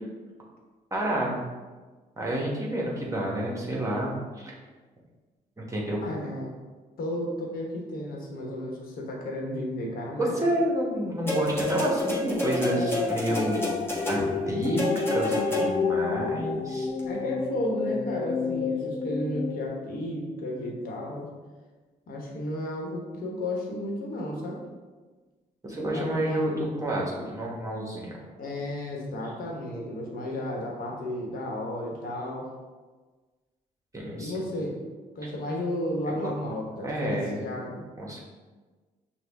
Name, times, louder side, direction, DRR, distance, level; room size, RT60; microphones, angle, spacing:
voice 1, 0.9-1.4 2.2-4.5 5.6-6.0 10.2-13.8 14.1-14.8 15.1-16.9 25.6-26.5 26.8-28.2 33.9-34.5 36.1-36.3 36.8-37.4 38.0-38.2, right 1 dB, 20° right, -3 dB, 1.1 m, -29 dB
voice 2, 6.0-6.6 7.0-10.3 17.0-21.3 22.1-24.6 25.9-26.7 28.4-32.5 34.2-34.7 35.1-37.8, left 1 dB, 70° left, 0 dB, 1.1 m, -33 dB
sound 1, 11.0-19.7, left 5 dB, 40° left, 0.4 m, -31 dB
sound 2, 11.3-16.0 17.0-17.1, left 1 dB, 15° left, 1.3 m, -29 dB
5.8 x 2.3 x 3.4 m, 1.3 s
cardioid pair, 70°, 15 cm